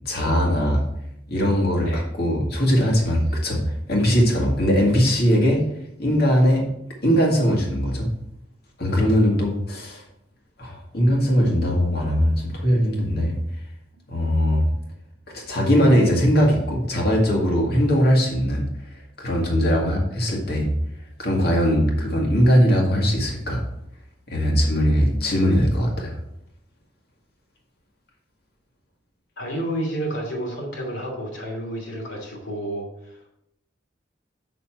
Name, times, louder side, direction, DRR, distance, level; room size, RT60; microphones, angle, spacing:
voice 1, 0.1-0.8 1.3-5.6 6.0-6.6 7.0-8.1 8.8-10.0 10.6-13.4 14.1-14.7 15.3-18.6 19.2-20.7 21.2-23.6 24.3-26.2, equal, 55° left, 0 dB, 2.0 m, -20 dB
voice 2, 29.4-33.2, right 1 dB, 70° left, -1 dB, 2.8 m, -30 dB
7.0 x 6.3 x 4.5 m, 0.78 s
head